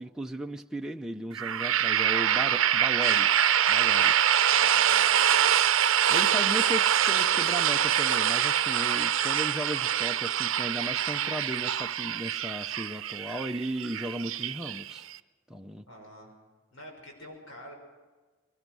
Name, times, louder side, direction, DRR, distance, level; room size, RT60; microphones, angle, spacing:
voice 1, 0.0-3.3 3.7-4.1 6.1-15.1 15.5-15.8, equal, 5° right, 2 dB, 0.6 m, -36 dB
sound 1, 1.3-15.2, right 9 dB, 80° right, 0.7 m, -25 dB
voice 2, 4.3-5.7 15.9-16.3 16.7-17.7, equal, 80° left, 0 dB, 6.4 m, -47 dB
23.0 x 19.0 x 6.2 m, 1.3 s
head